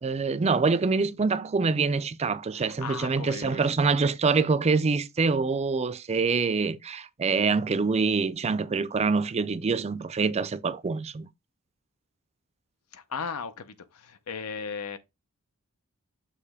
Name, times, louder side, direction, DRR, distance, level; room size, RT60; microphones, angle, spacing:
voice 1, 0.0-11.3, right 4 dB, 30° right, 0.4 m, -25 dB
voice 2, 2.5-4.0 12.9-15.0, left 5 dB, 80° left, 0.7 m, -37 dB
6.7 x 3.0 x 4.9 m
head